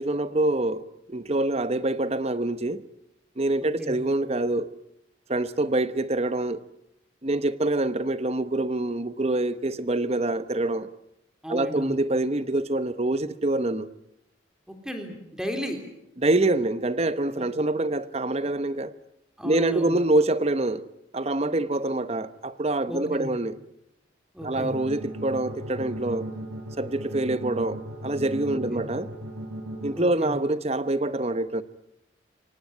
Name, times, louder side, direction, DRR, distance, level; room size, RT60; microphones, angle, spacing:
voice 1, 0.0-2.8 3.4-4.7 5.3-6.6 7.2-10.9 11.5-13.9 16.2-18.9 19.4-20.8 21.1-23.5 24.4-26.3 26.8-29.1 29.8-31.6, right 2 dB, 30° right, 1.0 m, -25 dB
voice 2, 3.6-4.0 11.4-12.0 14.7-15.8 19.4-19.9 22.9-23.3 24.3-24.8 28.7-28.8 29.9-30.4, equal, 5° right, 3.6 m, -34 dB
sound 1, 24.4-29.9, right 1 dB, 85° right, 7.9 m, -36 dB
24.5 x 19.0 x 9.6 m
head